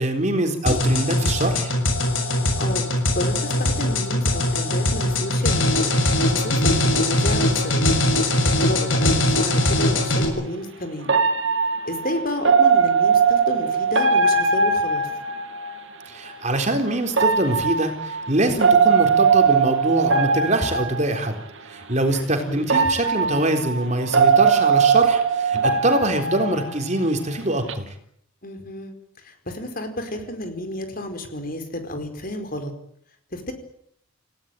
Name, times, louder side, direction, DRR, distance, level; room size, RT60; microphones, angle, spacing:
voice 1, 0.0-1.7 16.1-21.4 21.7-27.8, right 1 dB, 35° right, 5 dB, 3.9 m, -24 dB
sound 1, 0.7-10.3, left 1 dB, 75° left, 6.7 m, -21 dB
voice 2, 3.1-5.9 6.2-7.9 8.3-11.1 11.9-15.1 22.3-22.8 28.4-28.9 29.2-32.7 33.3-33.5, left 1 dB, 45° left, 7 dB, 4.8 m, -31 dB
sound 2, 9.6-9.7 11.1-15.8 17.1-21.3 22.1-22.2 22.7-27.1 27.4-27.7, right 5 dB, 65° right, 2.8 m, -20 dB
29.5 x 17.5 x 9.2 m, 0.70 s
head